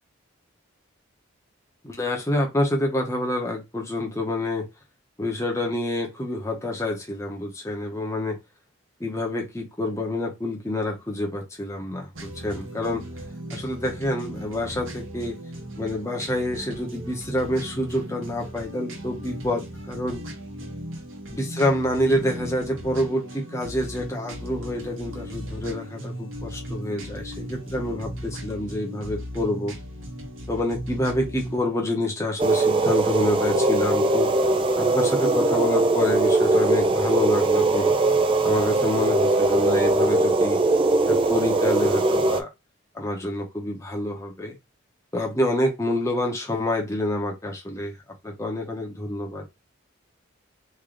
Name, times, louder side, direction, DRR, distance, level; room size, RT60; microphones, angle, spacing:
voice 1, 1.8-4.7 5.2-8.4 9.0-13.0 13.5-15.4 15.7-20.2 21.3-29.8 30.5-34.3 34.8-37.9 38.4-40.6 41.1-42.5 42.9-44.6 45.1-48.0 48.2-49.4, left 1 dB, 15° left, 0.9 m, -27 dB
sound 1, 12.1-31.6, equal, 75° right, 1.1 m, -37 dB
sound 2, 32.4-42.4, right 2 dB, 25° right, 0.3 m, -21 dB
3.3 x 2.7 x 3.8 m
head